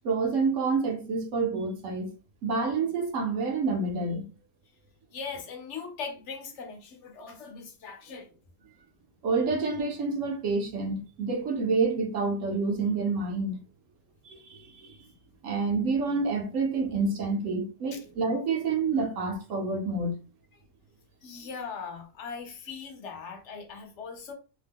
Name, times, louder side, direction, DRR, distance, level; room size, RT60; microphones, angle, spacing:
voice 1, 0.0-2.1 2.4-4.3 9.2-13.6 14.2-15.0 15.4-20.1, right 4 dB, 65° right, 1.0 m, -28 dB
voice 2, 5.1-8.3 17.9-18.0 21.2-24.3, left 5 dB, 60° left, 0.9 m, -40 dB
2.8 x 2.1 x 3.4 m
omnidirectional pair, 1.6 m